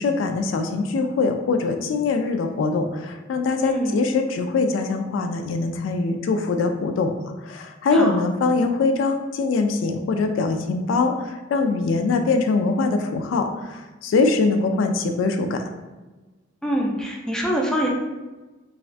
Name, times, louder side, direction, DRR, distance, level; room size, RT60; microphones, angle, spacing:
voice 1, 0.0-7.1 7.4-15.6, left 3 dB, 75° left, 5 dB, 0.3 m, -23 dB
voice 2, 3.6-4.0 7.9-8.2 16.6-17.9, equal, 5° left, -1 dB, 0.4 m, -24 dB
3.2 x 2.4 x 2.5 m, 1.2 s
head